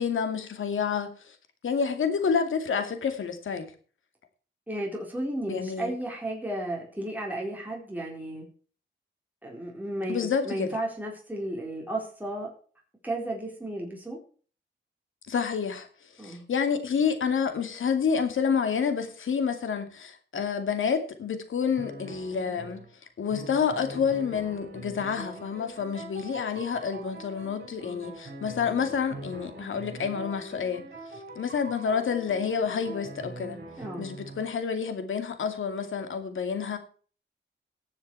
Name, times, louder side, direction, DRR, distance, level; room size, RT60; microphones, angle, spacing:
voice 1, 0.0-1.3 1.6-3.7 5.5-5.9 10.1-10.7 15.3-15.9 16.2-22.8 23.2-30.9 31.4-33.6 34.0-36.8, left 6 dB, 85° left, 2.4 m, -28 dB
voice 2, 4.7-8.5 9.4-12.5 13.0-14.2 16.2-16.4 33.8-34.1, right 1 dB, 10° right, 4.2 m, -33 dB
sound 1, 21.7-22.9 23.3-34.6, right 2 dB, 55° right, 5.9 m, -43 dB
18.0 x 7.4 x 4.7 m
wide cardioid pair, 95°, 20 cm